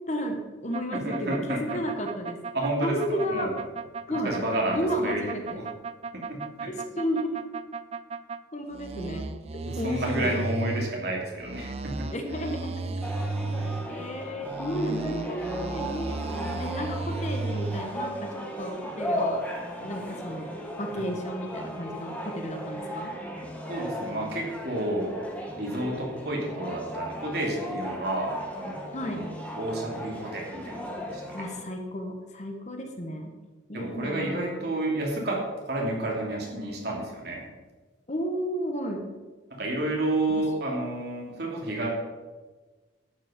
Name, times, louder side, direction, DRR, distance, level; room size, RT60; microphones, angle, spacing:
voice 1, 0.1-2.4 2.8-3.5 4.1-4.4 4.7-5.6 6.7-7.4 8.5-9.2 9.8-10.3 12.1-13.0 13.9-19.4 19.8-20.5 20.8-23.1 28.9-29.3 31.3-33.3 33.7-34.7 38.1-39.1 40.3-40.4, equal, 35° left, 4 dB, 1.3 m, -33 dB
sound 1, 0.7-8.4 8.7-10.9 11.4-13.9 14.4-17.8, right 3 dB, 30° right, 0.4 m, -34 dB
voice 2, 0.9-1.8 2.5-3.5 4.1-5.7 6.3-6.7 9.6-12.1 23.7-25.3 25.6-31.4 33.7-37.5 39.5-41.9, right 1 dB, 55° right, -2 dB, 2.9 m, -31 dB
sound 2, 13.0-31.6, equal, 5° left, 1.4 m, -36 dB
11.5 x 8.2 x 5.1 m, 1.3 s
head